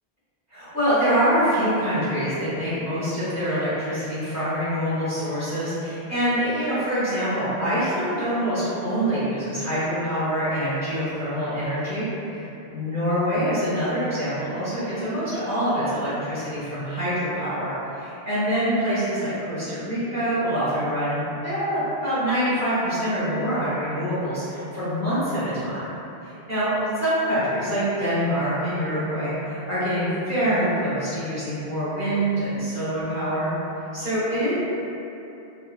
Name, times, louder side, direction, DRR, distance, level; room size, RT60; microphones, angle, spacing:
voice 1, 0.5-25.8 26.2-26.7 27.0-33.5 33.9-34.5, equal, 15° right, -15 dB, 1.1 m, -25 dB
2.7 x 2.6 x 2.3 m, 3.0 s
omnidirectional pair, 1.0 m